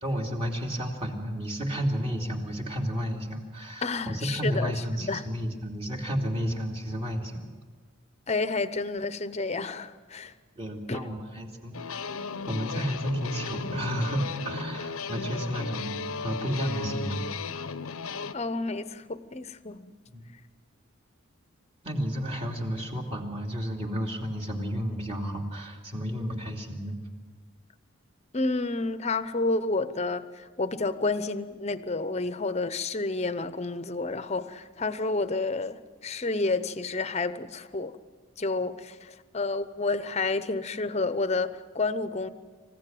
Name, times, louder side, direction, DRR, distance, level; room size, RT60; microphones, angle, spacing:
voice 1, 0.0-7.5 10.6-12.0 12.5-17.3 20.1-20.2 21.8-26.9, equal, 30° right, 2.8 m, -32 dB
voice 2, 3.8-5.3 8.3-10.3 10.9-11.0 18.3-19.9 28.3-38.0 38.4-42.3, left 3 dB, 30° left, 0.9 m, -30 dB
sound 1, 11.7-18.3, left 5 dB, 90° left, 0.9 m, -35 dB
27.0 x 15.5 x 9.2 m
head